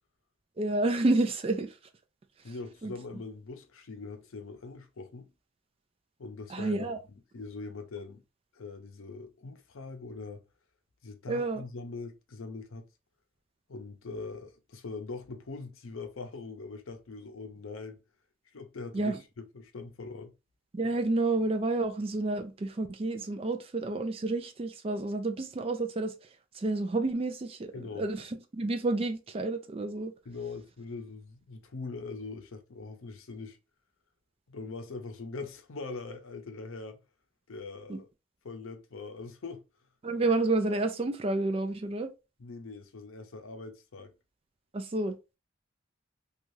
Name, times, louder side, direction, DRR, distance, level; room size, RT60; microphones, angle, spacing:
voice 1, 0.6-1.7 2.8-2.9 6.5-7.0 11.3-11.6 18.9-19.2 20.7-26.1 26.5-30.1 37.9-38.0 40.0-42.1 44.7-45.2, right 2 dB, 30° right, 0.3 m, -30 dB
voice 2, 2.4-5.3 6.2-8.2 8.5-10.4 11.0-12.9 13.7-18.0 18.5-20.3 27.7-28.0 30.3-33.6 34.5-37.0 37.5-38.1 38.4-39.6 42.4-44.1, left 3 dB, 80° left, 0.6 m, -42 dB
2.6 x 2.4 x 3.1 m
head